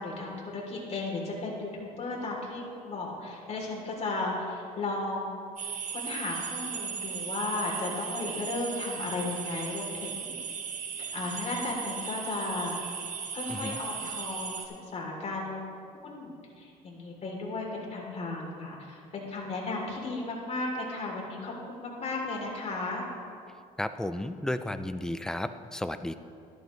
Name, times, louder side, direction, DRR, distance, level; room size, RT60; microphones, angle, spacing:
voice 1, 0.0-10.3 11.1-12.7 13.3-15.8 16.0-23.0, left 2 dB, 40° left, -2 dB, 3.1 m, -35 dB
sound 1, 5.6-14.7, right 7 dB, 50° right, 1.1 m, -37 dB
voice 2, 23.8-26.1, left 1 dB, 5° left, 10 dB, 0.4 m, -33 dB
13.0 x 12.0 x 3.2 m, 2.4 s
cardioid pair, 110°, 17 cm